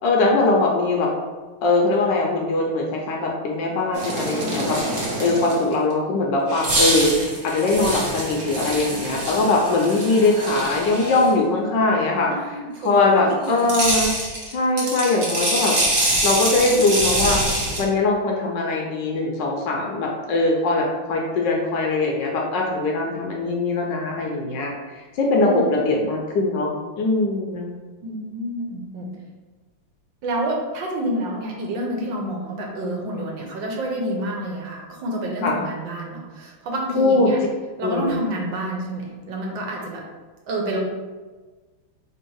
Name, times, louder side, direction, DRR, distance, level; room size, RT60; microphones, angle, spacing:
voice 1, 0.0-1.1 1.6-4.8 5.2-7.1 7.4-12.3 12.8-14.1 14.5-15.8 16.2-17.4 17.8-27.7 35.4-35.5 37.0-37.3 37.8-38.1, left 3 dB, 75° left, 0 dB, 1.2 m, -21 dB
sound 1, 3.9-5.7 6.5-11.3 13.4-17.8, right 1 dB, 45° right, 0.7 m, -25 dB
voice 2, 12.3-13.7 25.4-25.7 28.0-29.1 30.2-37.4 37.8-40.0 40.5-40.8, right 1 dB, 70° right, 0 dB, 1.4 m, -28 dB
3.5 x 2.9 x 4.6 m, 1.3 s
omnidirectional pair, 2.2 m